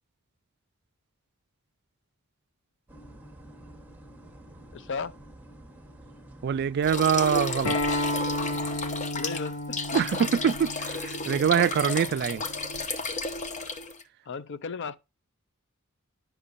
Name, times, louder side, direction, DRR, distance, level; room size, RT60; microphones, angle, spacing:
sound 1, 2.9-8.9, right 1 dB, 10° right, 1.1 m, -49 dB
voice 1, 4.7-5.2 9.1-10.0 14.3-15.0, left 4 dB, 60° left, 0.5 m, -35 dB
voice 2, 6.4-8.0 9.9-12.4, right 7 dB, 50° right, 0.3 m, -24 dB
sound 2, 6.8-14.0, left 3 dB, 35° left, 0.8 m, -33 dB
Acoustic guitar, 7.6-12.8, left 1 dB, 90° left, 0.9 m, -33 dB
9.8 x 5.8 x 2.5 m
head